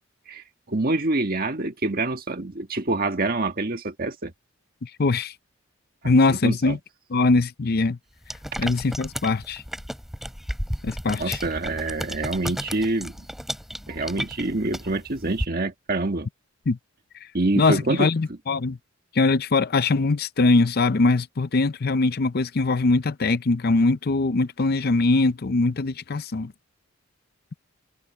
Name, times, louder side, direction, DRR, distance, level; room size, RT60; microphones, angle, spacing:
voice 1, 0.3-4.3 6.3-6.8 11.2-13.3 13.9-16.3 17.3-18.1, right 2 dB, 45° right, 1.7 m, -26 dB
voice 2, 4.8-5.3 6.0-6.8 7.1-8.0 8.6-9.6 10.8-11.4 16.7-16.8 17.6-18.8 19.2-26.5, left 3 dB, 45° left, 0.5 m, -22 dB
sound 1, 8.3-15.4, equal, ahead, 2.7 m, -33 dB
head